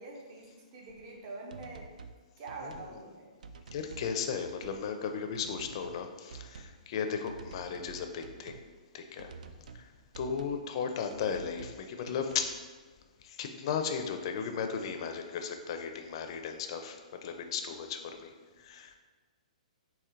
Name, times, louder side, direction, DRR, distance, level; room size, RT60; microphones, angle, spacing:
voice 1, 0.0-1.9 2.4-3.3, right 2 dB, 30° right, 0 dB, 0.6 m, -45 dB
sound 1, 0.9-1.0 1.5-2.2 2.5-2.9 3.4-4.1 4.4-4.8 5.3-6.0 6.3-6.8 7.3-8.7 9.2-9.8 10.1-10.6 11.1-11.8 12.1-12.5, right 5 dB, 75° right, 0.3 m, -49 dB
voice 2, 3.7-8.6 8.9-9.3 9.7-9.9 10.2-12.5 13.2-19.0, left 6 dB, 40° left, 6 dB, 0.4 m, -36 dB
4.4 x 3.0 x 3.7 m, 1.4 s
hypercardioid pair, 160°, 4 cm